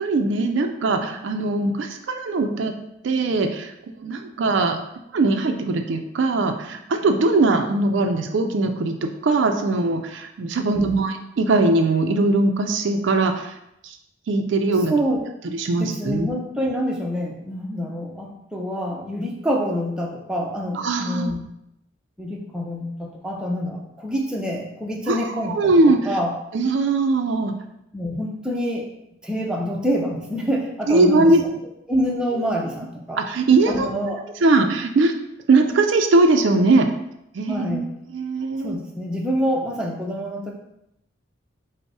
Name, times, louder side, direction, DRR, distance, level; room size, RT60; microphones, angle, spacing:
voice 1, 0.0-2.7 3.0-4.8 5.1-13.5 13.8-14.0 14.3-14.9 15.5-16.3 20.8-21.3 25.1-26.1 26.5-27.6 30.9-31.4 33.2-33.9 34.4-35.1 35.5-36.9 37.3-37.9 38.1-38.8, right 2 dB, 60° right, 5 dB, 0.4 m, -20 dB
voice 2, 10.7-11.0 14.9-15.2 15.8-21.5 22.2-25.6 25.9-26.3 27.9-28.9 29.2-31.3 31.9-33.2 33.7-34.2 37.5-37.9 38.6-40.5, equal, 5° right, -2 dB, 0.5 m, -26 dB
5.2 x 2.0 x 4.6 m, 0.82 s
head